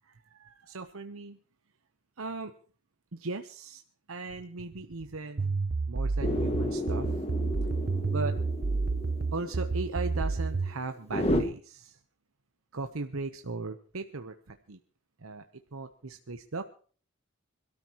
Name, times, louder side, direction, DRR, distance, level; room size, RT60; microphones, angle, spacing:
voice 1, 0.0-1.4 2.2-2.5 3.1-3.8 4.1-5.6 5.9-7.3 8.1-8.3 9.3-12.0 12.7-14.8 15.2-16.7, right 3 dB, 85° right, 7 dB, 1.0 m, -38 dB
sound 1, 5.4-10.7, right 4 dB, 50° right, 0.7 m, -30 dB
sound 2, 6.2-11.4, left 1 dB, 30° left, 1.9 m, -33 dB
26.0 x 13.0 x 3.0 m, 0.42 s
head